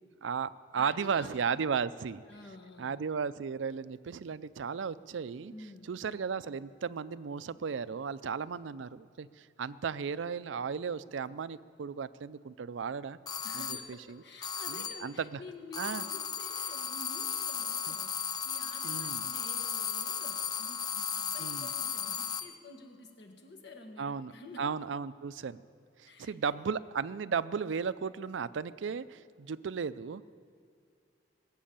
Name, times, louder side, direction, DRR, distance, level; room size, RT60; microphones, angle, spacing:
voice 1, 0.2-2.2 2.8-5.5 5.9-13.2 13.5-13.8 14.1-14.2 14.7-15.4 15.8-16.0 17.9-18.0 18.8-19.3 21.4-21.7 24.0-24.3 24.6-25.6 26.0-30.2, right 6 dB, 85° right, 16 dB, 0.4 m, -35 dB
voice 2, 0.7-1.3 2.3-3.0 5.5-5.9 13.4-18.2 18.4-24.7 26.1-26.6, left 2 dB, 65° left, 4 dB, 1.8 m, -50 dB
sound 1, 13.3-14.0 14.4-15.2 15.7-22.6, left 7 dB, 20° left, 0.4 m, -35 dB
20.0 x 7.6 x 8.8 m, 2.3 s
head